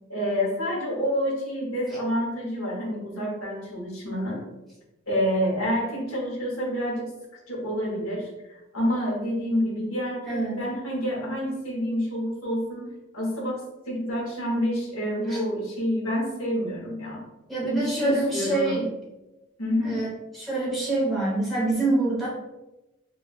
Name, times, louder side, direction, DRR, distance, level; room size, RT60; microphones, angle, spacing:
voice 1, 0.1-4.4 5.1-7.1 7.5-17.2 17.7-18.9 19.6-20.0, equal, 85° left, -3 dB, 1.0 m, -28 dB
voice 2, 10.3-10.6 15.3-15.4 17.5-18.8 19.8-20.1 20.3-22.3, right 2 dB, ahead, -7 dB, 1.0 m, -25 dB
3.9 x 2.3 x 2.4 m, 1.0 s
head